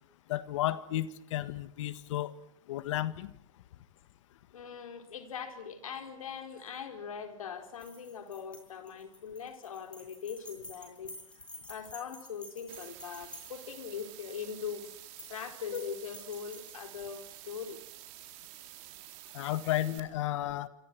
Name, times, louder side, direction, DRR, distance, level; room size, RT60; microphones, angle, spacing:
voice 1, 0.3-2.3 2.7-3.3 19.3-20.7, left 14 dB, 65° left, 14 dB, 1.7 m, -33 dB
voice 2, 4.5-14.9 15.3-17.8, left 7 dB, 85° left, 7 dB, 4.5 m, -41 dB
sound 1, 7.7-13.9 14.9-15.4 15.7-17.2, left 1 dB, 5° left, 7.5 m, -50 dB
sound 2, 12.7-20.0, right 17 dB, 45° right, 3.9 m, -50 dB
27.0 x 26.5 x 6.2 m, 0.72 s
hypercardioid pair, 125°, 17 cm